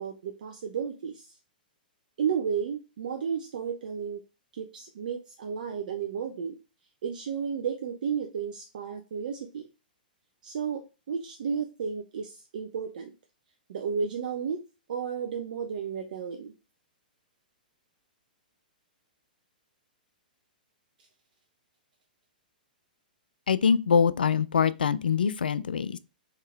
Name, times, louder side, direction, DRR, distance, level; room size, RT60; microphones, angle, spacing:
voice 1, 0.0-1.4 2.2-4.2 4.5-6.6 7.0-9.7 10.4-13.1 13.7-14.6 14.9-16.5, right 6 dB, 65° right, 0.5 m, -33 dB
voice 2, 23.5-26.0, left 6 dB, 80° left, 0.3 m, -24 dB
3.6 x 3.2 x 3.2 m
hypercardioid pair, 115°, 5 cm